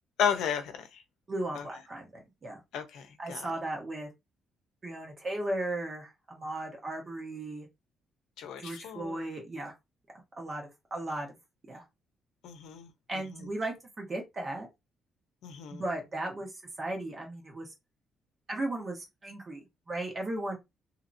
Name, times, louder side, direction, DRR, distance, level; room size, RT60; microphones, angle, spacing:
voice 1, 0.2-0.7 2.7-3.0 3.3-3.4 8.4-9.2 12.4-12.9 15.4-15.8, left 8 dB, 90° left, 0.6 m, -32 dB
voice 2, 1.3-2.6 3.2-4.1 4.8-7.7 8.6-9.7 10.4-11.4 11.7-11.8 13.1-14.7 15.7-16.5 16.8-17.7 18.5-20.6, right 1 dB, 30° right, 1.1 m, -36 dB
2.8 x 2.8 x 2.6 m
cardioid pair, 125°, 0 cm